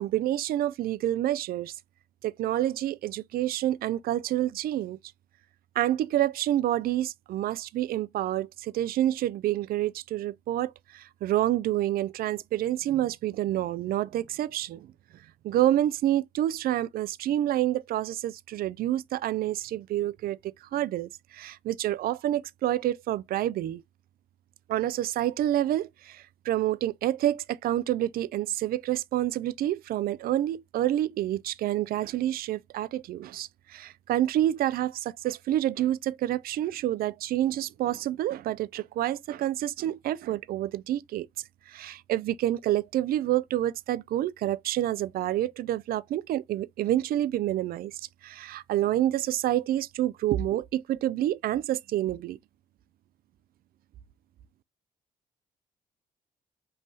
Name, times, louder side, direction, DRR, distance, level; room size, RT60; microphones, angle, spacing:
voice 1, 0.0-1.7 2.2-5.0 5.8-14.9 15.4-23.8 24.7-41.3 41.7-47.9 48.2-52.4, right 13 dB, 60° right, 0.4 m, -28 dB
5.4 x 2.6 x 3.1 m
hypercardioid pair, 50°, 17 cm